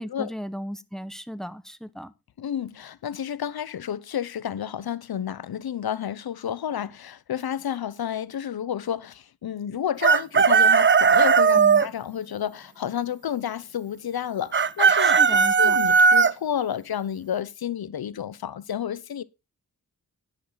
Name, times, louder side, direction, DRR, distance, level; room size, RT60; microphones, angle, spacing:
voice 1, 0.0-2.1 11.6-11.8 15.0-15.8, equal, ahead, 1.1 m, -35 dB
voice 2, 2.4-19.2, left 9 dB, 90° left, 0.9 m, -31 dB
Chicken rooster, 10.0-11.9 14.5-16.3, right 5 dB, 35° right, 0.6 m, -17 dB
10.5 x 10.5 x 3.9 m
wide cardioid pair, 140°, 36 cm